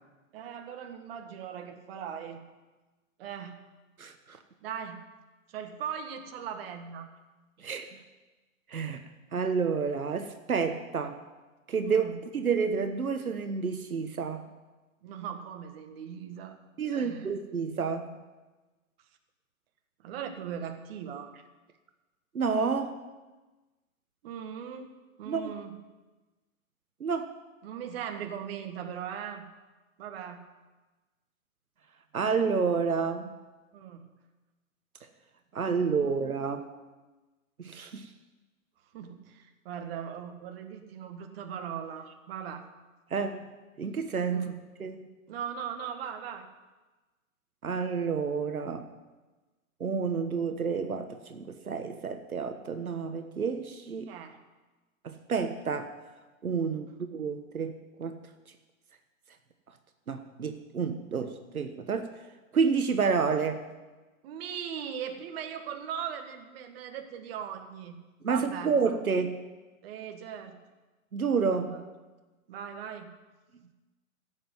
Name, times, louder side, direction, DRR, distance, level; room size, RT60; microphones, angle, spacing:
voice 1, 0.3-2.4 3.2-3.6 4.6-5.0 5.5-7.1 11.8-12.2 15.0-16.6 16.8-17.2 20.0-21.3 24.2-24.9 25.2-25.8 27.6-29.5 30.0-30.4 33.7-34.1 36.0-36.1 38.9-42.7 44.3-44.5 45.3-46.5 54.1-54.4 64.2-68.0 68.3-68.7 69.8-70.6 71.5-71.8 72.5-73.1, right 8 dB, 45° right, 5 dB, 1.7 m, -39 dB
voice 2, 4.0-4.4 7.6-7.9 8.7-9.0 9.3-11.2 11.7-12.1 12.3-14.4 16.8-18.1 22.3-23.0 25.2-25.5 27.0-27.3 32.1-33.3 35.5-36.7 37.6-38.1 43.1-43.5 43.8-44.5 44.8-45.1 47.6-48.9 49.8-54.1 55.0-55.9 56.4-56.9 57.1-58.1 60.1-62.1 62.5-63.7 68.2-69.4 71.1-71.7, right 5 dB, 90° right, 7 dB, 1.3 m, -29 dB
12.5 x 7.9 x 9.4 m, 1.2 s
hypercardioid pair, 125°, 42 cm